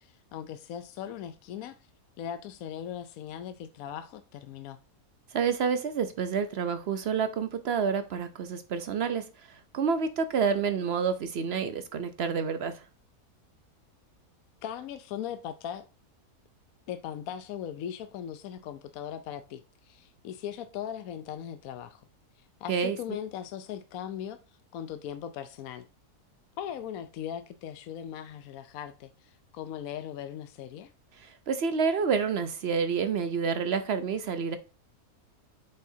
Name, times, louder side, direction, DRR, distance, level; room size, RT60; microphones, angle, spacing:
voice 1, 0.0-1.8 2.2-4.8 14.6-15.9 16.9-22.0 22.6-24.4 24.7-25.9 26.6-30.9, left 9 dB, 70° left, 1.0 m, -39 dB
voice 2, 5.3-9.2 9.7-12.7 22.7-23.0 31.5-34.6, right 6 dB, 60° right, 0.7 m, -28 dB
7.5 x 5.5 x 2.7 m
omnidirectional pair, 1.6 m